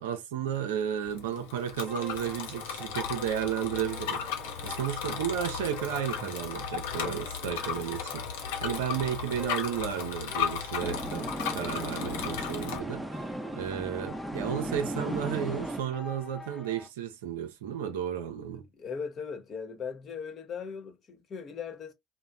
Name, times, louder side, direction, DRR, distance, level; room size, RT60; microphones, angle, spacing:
voice 1, 0.0-4.3 4.6-13.3 13.5-18.7, right 9 dB, 80° right, 0.5 m, -33 dB
Bicycle, 1.0-12.8, left 7 dB, 75° left, 0.6 m, -35 dB
sound 1, 1.9-16.9, left 3 dB, 20° left, 1.0 m, -47 dB
sound 2, 10.8-15.8, right 1 dB, 5° right, 0.6 m, -36 dB
voice 2, 18.7-21.9, left 6 dB, 50° left, 0.9 m, -38 dB
3.0 x 2.1 x 2.3 m
hypercardioid pair, 60°, 0 cm